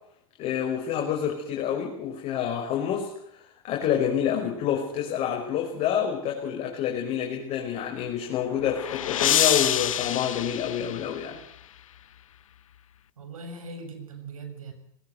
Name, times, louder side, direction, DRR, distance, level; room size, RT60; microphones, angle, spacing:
voice 1, 0.4-3.1 3.6-11.4, left 9 dB, 40° left, 0 dB, 5.4 m, -28 dB
sound 1, 8.1-11.5, left 11 dB, 70° left, 1.0 m, -27 dB
voice 2, 13.2-14.7, right 3 dB, 75° right, 7 dB, 7.0 m, -40 dB
20.5 x 19.0 x 8.0 m, 0.72 s
hypercardioid pair, 100°, 18 cm